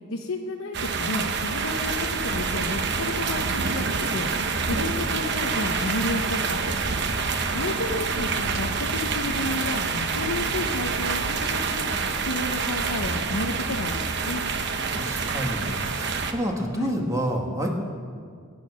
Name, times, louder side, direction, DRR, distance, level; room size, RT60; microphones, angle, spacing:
voice 1, 0.1-3.9 4.1-4.3 4.7-6.8 7.5-11.9 12.3-14.4 16.7-17.0, left 2 dB, 80° left, 2 dB, 0.9 m, -31 dB
sound 1, 0.7-16.3, right 4 dB, 55° right, 1.0 m, -27 dB
voice 2, 6.9-7.6 14.9-17.7, equal, 15° right, 1 dB, 1.7 m, -30 dB
22.0 x 9.1 x 6.3 m, 2.1 s
head